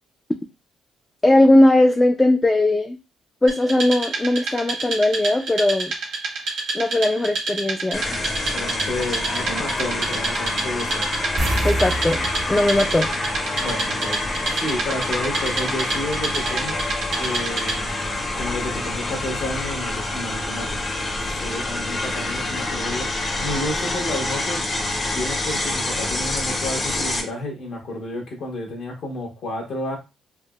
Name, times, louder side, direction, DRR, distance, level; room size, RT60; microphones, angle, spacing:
voice 1, 1.2-3.0 3.4-5.9 6.7-8.2 11.6-13.1, left 1 dB, 15° left, 3 dB, 0.3 m, -18 dB
Wood, 3.5-18.0, right 3 dB, 85° right, 1.2 m, -29 dB
sound 1, 7.9-27.2, left 2 dB, 35° left, 0.7 m, -27 dB
voice 2, 8.5-11.1 13.5-16.8 17.2-17.9 18.4-20.8 21.2-24.6 25.1-30.0, left 1 dB, 70° left, 0 dB, 1.0 m, -31 dB
sound 2, 11.4-14.2 14.5-14.6 17.5-17.6 18.0-18.1, right 1 dB, 55° right, 0.6 m, -28 dB
3.4 x 2.0 x 2.3 m, 0.27 s
cardioid pair, 90°, 0 cm